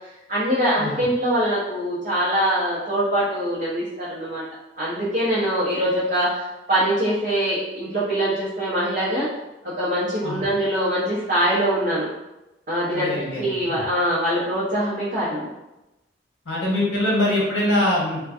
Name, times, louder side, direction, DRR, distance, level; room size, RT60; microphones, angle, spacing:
voice 1, 0.3-4.4 4.8-9.3 9.6-12.1 12.7-15.5, equal, 50° right, -10 dB, 0.7 m, -23 dB
voice 2, 12.9-13.8 16.5-18.2, left 1 dB, 85° left, -4 dB, 0.8 m, -23 dB
2.5 x 2.2 x 2.3 m, 0.98 s
head